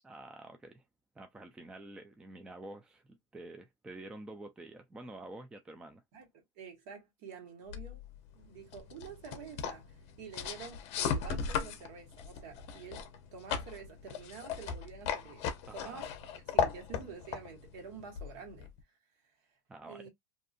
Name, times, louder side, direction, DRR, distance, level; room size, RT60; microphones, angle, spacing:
voice 1, 0.0-0.8 1.2-6.0 15.7-16.0 19.7-20.1, right 2 dB, 5° right, 0.3 m, -48 dB
voice 2, 6.1-8.0 8.3-15.5 15.7-18.7 19.8-20.1, right 6 dB, 60° right, 1.4 m, -48 dB
sound 1, 7.7-18.8, left 7 dB, 45° left, 0.7 m, -37 dB
2.6 x 2.5 x 2.5 m
supercardioid pair, 140°, 15 cm